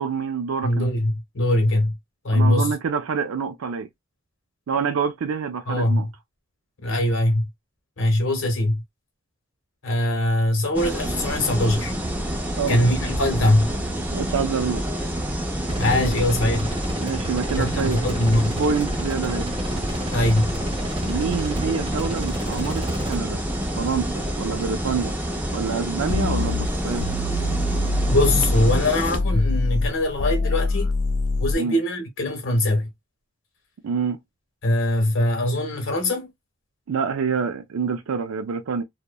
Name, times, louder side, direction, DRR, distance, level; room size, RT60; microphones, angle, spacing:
voice 1, 0.0-0.9 2.3-3.9 4.7-6.1 12.5-12.8 14.1-14.8 17.0-18.1 18.5-19.5 21.1-23.4 23.8-25.1 25.5-27.1 31.6-31.8 33.8-34.2 36.9-38.8, right 6 dB, 80° right, 0.4 m, -26 dB
voice 2, 0.6-2.0 2.2-2.7 5.7-6.0 6.8-7.4 8.0-8.8 9.8-11.9 12.7-13.7 15.7-16.7 17.6-18.6 20.1-20.5 28.1-30.9 31.4-32.9 34.6-36.3, left 1 dB, 65° left, 0.9 m, -22 dB
sound 1, 10.7-29.2, equal, 10° right, 0.4 m, -28 dB
sound 2, 15.6-23.2, right 1 dB, 25° right, 0.8 m, -32 dB
sound 3, 26.1-28.8 29.1-31.6, left 2 dB, 90° left, 0.4 m, -24 dB
2.7 x 2.1 x 2.2 m
head